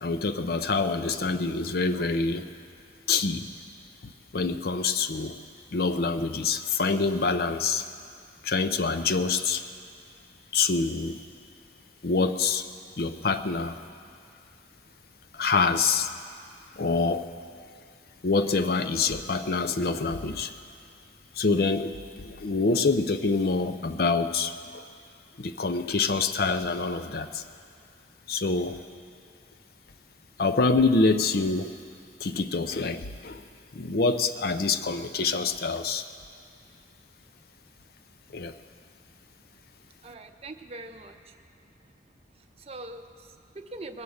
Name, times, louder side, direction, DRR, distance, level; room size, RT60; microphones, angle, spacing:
voice 1, 0.0-2.5 3.1-3.5 4.3-5.4 5.7-7.8 8.4-9.6 10.5-11.2 12.0-12.7 13.0-13.8 15.3-16.1 16.8-17.3 18.2-20.5 21.4-24.8 25.4-27.4 28.3-28.8 30.4-31.7 32.2-33.4 33.7-36.0 38.3-38.5, left 4 dB, 55° left, 9 dB, 0.5 m, -26 dB
voice 2, 40.0-41.3 42.4-44.0, right 2 dB, 35° right, 7 dB, 0.6 m, -43 dB
21.0 x 8.3 x 6.4 m, 2.5 s
head